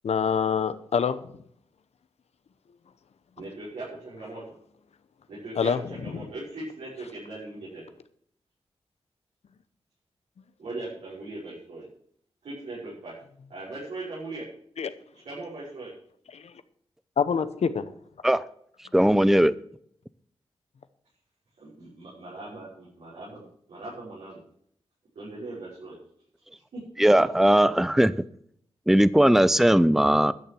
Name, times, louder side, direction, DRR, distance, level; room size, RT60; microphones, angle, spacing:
voice 1, 0.0-1.2 5.6-5.8 14.8-14.9 16.3-16.4 17.2-17.8, left 6 dB, 75° left, 12 dB, 1.0 m, -25 dB
voice 2, 3.4-4.4 5.3-7.9 10.6-11.8 12.4-13.1 13.5-14.4 15.2-15.9 21.6-24.4 25.1-26.0 26.7-26.8, right 2 dB, 85° right, -8 dB, 5.6 m, -39 dB
voice 3, 18.9-19.5 27.0-28.1 28.9-30.3, right 1 dB, 5° right, 16 dB, 0.7 m, -19 dB
12.0 x 6.9 x 7.6 m, 0.64 s
cardioid pair, 45°, 11 cm